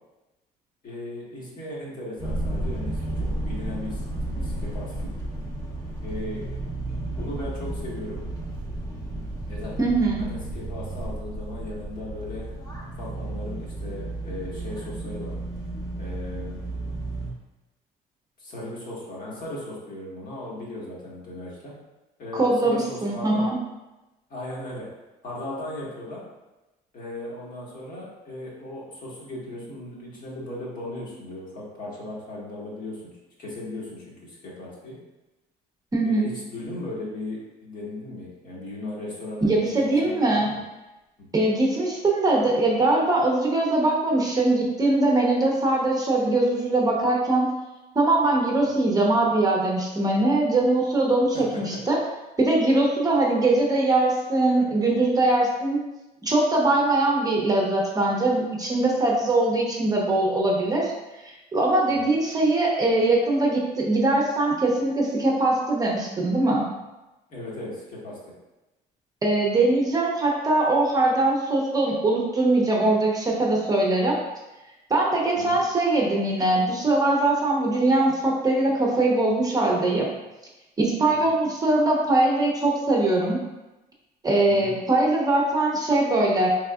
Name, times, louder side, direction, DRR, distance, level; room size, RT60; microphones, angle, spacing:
voice 1, 0.8-3.0 3.3-5.1 6.0-6.5 7.1-8.2 9.4-9.7 10.3-12.4 13.0-15.4 16.0-16.8 18.4-21.7 22.2-23.5 24.3-24.9 25.2-26.2 26.9-33.0 33.4-35.0 36.0-40.6 51.3-51.4 61.9-62.1 67.3-68.2 75.3-75.6 81.1-81.3 84.5-84.7, left 1 dB, 55° left, -5 dB, 1.4 m, -37 dB
sound 1, 2.2-17.3, right 2 dB, 20° left, 0.9 m, -32 dB
voice 2, 9.8-10.3 22.3-23.6 35.9-36.3 39.4-40.5 41.3-47.5 47.9-52.0 52.4-55.8 56.2-60.9 61.2-66.6 69.2-74.2 74.9-80.1 80.8-83.4 84.2-86.5, right 2 dB, 20° right, -2 dB, 0.7 m, -22 dB
3.8 x 3.5 x 2.4 m, 1.0 s
cardioid pair, 110°, 17 cm